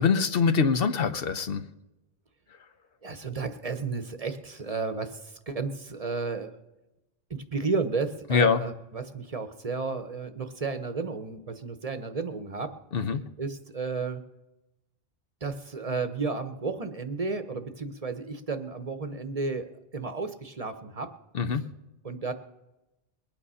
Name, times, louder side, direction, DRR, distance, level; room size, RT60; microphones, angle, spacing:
voice 1, 0.0-1.7 8.3-8.6 12.9-13.2 21.3-21.7, left 6 dB, 65° left, 10 dB, 0.9 m, -24 dB
voice 2, 3.0-6.6 7.3-12.7 13.4-14.2 15.4-21.1 22.0-22.3, right 4 dB, 40° right, 9 dB, 0.9 m, -33 dB
21.5 x 9.0 x 5.5 m, 0.97 s
omnidirectional pair, 1.1 m